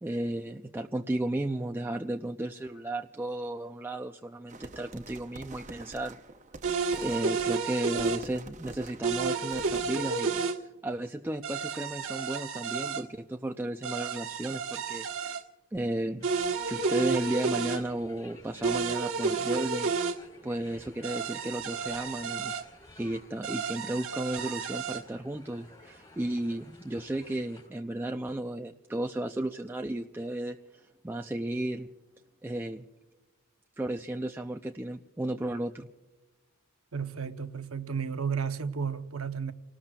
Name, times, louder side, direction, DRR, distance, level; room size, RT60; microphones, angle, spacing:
voice 1, 0.0-6.2 7.0-15.4 15.7-16.3 16.6-19.9 20.4-22.5 23.0-31.9 32.4-32.9 33.8-35.9, right 1 dB, 10° right, 0.4 m, -34 dB
sound 1, 4.5-9.9, right 2 dB, 35° right, 0.8 m, -47 dB
sound 2, 6.6-8.2 9.0-10.6 11.4-13.0 13.8-15.4 16.2-17.8 18.6-20.2 21.0-22.6 23.4-25.0, right 5 dB, 70° right, 1.4 m, -31 dB
sound 3, 16.2-27.7, left 1 dB, 20° left, 3.9 m, -54 dB
voice 2, 36.9-39.5, right 6 dB, 90° right, 0.9 m, -33 dB
30.0 x 19.0 x 2.4 m
head